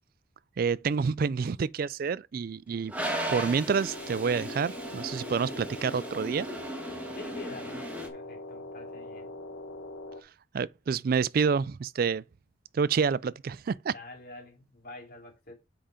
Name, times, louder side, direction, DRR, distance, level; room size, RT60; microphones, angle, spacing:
voice 1, 0.6-2.9 3.3-6.5 10.5-12.2 12.7-13.9, right 5 dB, 45° right, 0.3 m, -28 dB
Toilet flush, 2.9-8.1, right 1 dB, 5° right, 1.5 m, -36 dB
sound 1, 3.9-10.2, left 2 dB, 70° left, 1.1 m, -42 dB
voice 2, 7.1-7.8 8.1-9.3 13.9-15.5, left 2 dB, 45° left, 3.6 m, -46 dB
7.8 x 5.0 x 5.0 m
head